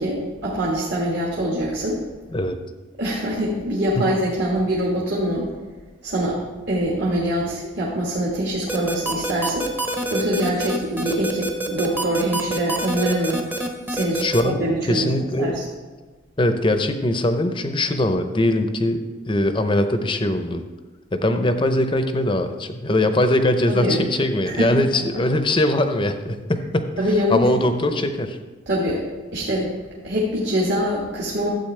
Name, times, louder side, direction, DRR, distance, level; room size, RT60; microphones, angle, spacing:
voice 1, 0.0-2.0 3.0-5.5 6.0-6.4 6.7-9.7 10.1-13.4 13.9-14.2 14.6-15.1 15.4-15.6 23.7-24.0 24.5-24.7 27.0-27.4 28.7-29.0 29.3-29.7 30.0-31.5, equal, 55° right, -4 dB, 1.5 m, -24 dB
sound 1, 8.7-14.4, right 1 dB, 10° right, 0.7 m, -26 dB
voice 2, 14.2-15.6 16.4-20.6 21.1-26.9 27.3-28.4, left 1 dB, 25° left, 8 dB, 0.6 m, -21 dB
12.5 x 7.9 x 3.3 m, 1.4 s
head